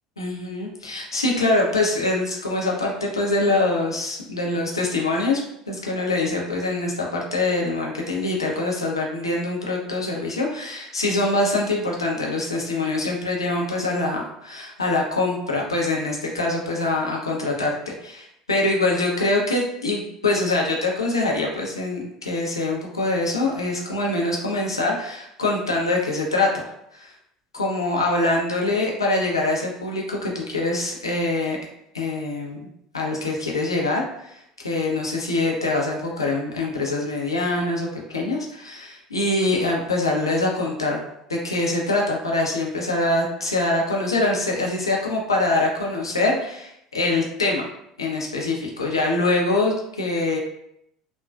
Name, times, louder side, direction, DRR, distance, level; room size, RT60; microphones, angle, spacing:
voice 1, 0.2-26.5 26.9-27.1 27.5-31.6 31.9-32.7 32.9-41.0 41.3-47.6 48.0-50.4, left 2 dB, 85° left, -2 dB, 0.6 m, -24 dB
3.4 x 2.2 x 2.2 m, 0.77 s
figure-of-eight pair, 65°, 2 cm